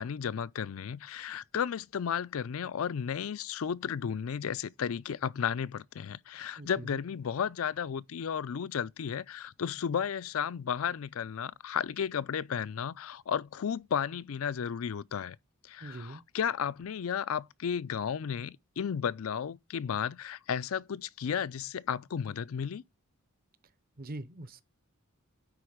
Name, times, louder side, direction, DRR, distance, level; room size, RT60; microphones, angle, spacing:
voice 1, 0.0-15.4 15.6-22.8, left 7 dB, 70° left, 0.4 m, -33 dB
voice 2, 6.6-7.0 15.8-16.2 24.0-24.6, right 2 dB, 45° right, 0.8 m, -43 dB
9.6 x 4.0 x 4.9 m
head